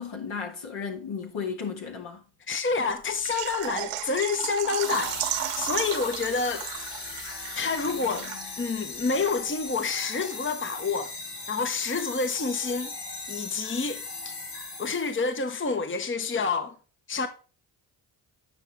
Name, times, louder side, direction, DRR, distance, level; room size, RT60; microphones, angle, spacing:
voice 1, 0.0-2.2, left 6 dB, 65° left, 2.3 m, -34 dB
voice 2, 2.5-6.9 7.6-11.1 11.5-12.9 13.3-14.3 14.8-16.7 17.1-17.3, left 4 dB, 25° left, 1.0 m, -28 dB
Water / Liquid, 3.1-8.7 9.0-9.1 9.5-9.6, right 11 dB, 80° right, 1.1 m, -34 dB
sound 1, 4.8-15.3, left 3 dB, 85° left, 2.0 m, -38 dB
9.2 x 5.7 x 3.5 m
supercardioid pair, 50°, 50 cm